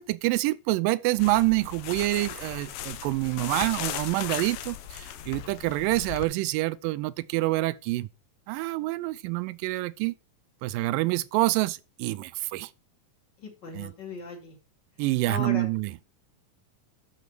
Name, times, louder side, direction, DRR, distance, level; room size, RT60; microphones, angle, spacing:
voice 1, 0.0-8.1 8.5-10.1 10.6-12.7 13.7-13.9 15.0-16.0, right 19 dB, 85° right, 2.2 m, -27 dB
sound 1, 1.2-6.2, left 11 dB, 85° left, 2.6 m, -37 dB
voice 2, 13.4-14.6 15.2-15.6, left 3 dB, 35° left, 3.0 m, -37 dB
12.0 x 4.8 x 4.6 m
omnidirectional pair, 4.0 m